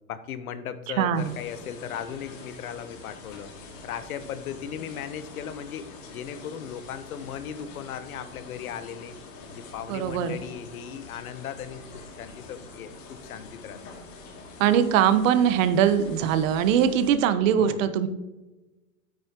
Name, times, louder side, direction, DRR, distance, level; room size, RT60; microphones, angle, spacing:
voice 1, 0.1-3.5 3.8-9.2 9.5-11.8 12.2-13.8 17.6-17.9, left 8 dB, 75° left, 12 dB, 1.0 m, -37 dB
voice 2, 1.0-1.3 9.9-10.3 14.6-18.1, right 9 dB, 60° right, 11 dB, 1.0 m, -21 dB
sound 1, 1.2-17.1, left 3 dB, 60° left, 2.4 m, -45 dB
9.3 x 8.8 x 2.9 m, 1.1 s
hypercardioid pair, 110°, 43 cm